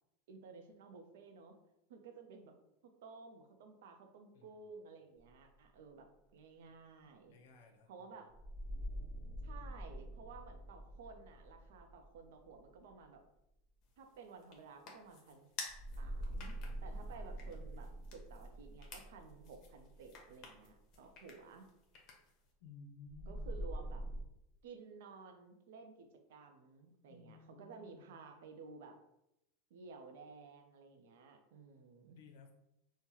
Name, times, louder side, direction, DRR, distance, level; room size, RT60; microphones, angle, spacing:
voice 1, 0.3-1.6 1.9-2.5 3.0-7.3 7.9-8.3 9.4-13.2 14.0-15.5 16.0-21.7 23.3-24.0 24.6-29.0 29.7-32.2, right 4 dB, 75° right, 5 dB, 0.5 m, -54 dB
voice 2, 4.3-4.7 6.8-8.3 22.6-23.5 27.1-28.1 32.1-32.5, left 4 dB, 75° left, 4 dB, 0.6 m, -58 dB
sound 1, 8.3-13.0 15.7-20.8 23.1-24.2, right 1 dB, 35° right, 0.7 m, -45 dB
sound 2, 13.8-22.5, left 4 dB, 45° left, 0.8 m, -54 dB
3.7 x 2.1 x 2.9 m, 0.84 s
hypercardioid pair, 115°, 0 cm